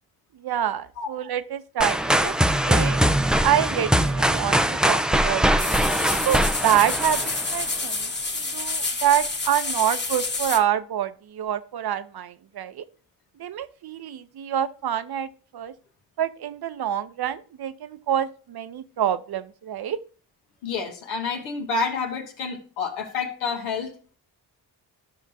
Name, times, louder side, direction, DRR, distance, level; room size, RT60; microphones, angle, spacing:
voice 1, 0.4-2.3 2.7-3.0 3.4-5.7 6.3-12.8 13.4-15.3 15.5-15.7 16.2-20.0, right 10 dB, 50° right, 0.7 m, -26 dB
sound 1, 1.8-7.7, right 1 dB, ahead, 0.3 m, -22 dB
sound 2, 5.6-10.6, left 3 dB, 20° left, 1.3 m, -28 dB
voice 2, 20.6-23.9, left 4 dB, 85° left, 1.5 m, -29 dB
12.0 x 5.9 x 2.7 m
hypercardioid pair, 45°, 50 cm